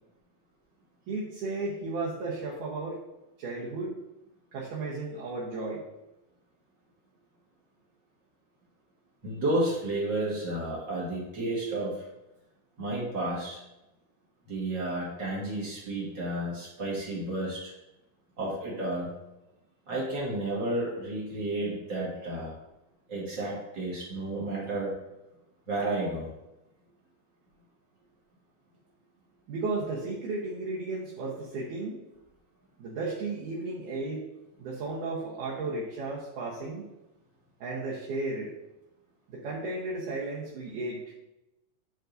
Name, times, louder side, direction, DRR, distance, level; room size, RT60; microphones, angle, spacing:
voice 1, 1.1-3.0 3.4-4.0 4.5-5.8 29.5-32.0 32.8-34.2 34.6-36.8 37.6-38.5 39.3-41.1, right 3 dB, 65° right, -5 dB, 2.3 m, -34 dB
voice 2, 9.2-12.1 12.8-13.6 14.5-17.7 18.4-19.1 19.9-22.5 23.1-24.9 25.7-26.3, right 1 dB, 40° right, -5 dB, 1.9 m, -31 dB
10.0 x 5.3 x 2.6 m, 0.95 s
omnidirectional pair, 4.4 m